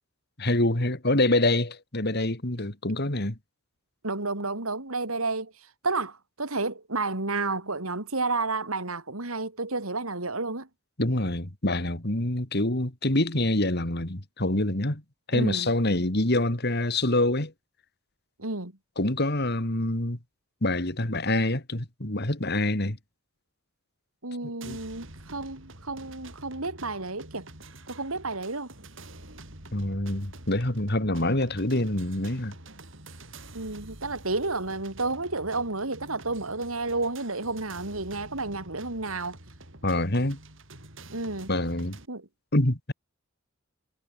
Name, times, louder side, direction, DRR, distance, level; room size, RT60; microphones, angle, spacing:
voice 1, 0.4-3.4 11.0-15.0 15.3-17.5 19.0-20.2 20.6-23.0 24.6-24.8 29.7-32.5 39.8-40.4 41.5-42.0 42.5-42.9, left 1 dB, 50° left, 3.0 m, -26 dB
voice 2, 4.0-5.5 5.8-10.7 15.3-15.7 18.4-18.7 24.2-27.5 27.9-28.7 33.5-39.3 41.1-41.5 42.1-42.3, right 3 dB, 80° right, 3.7 m, -31 dB
sound 1, 24.6-42.1, right 2 dB, 60° right, 7.4 m, -47 dB
head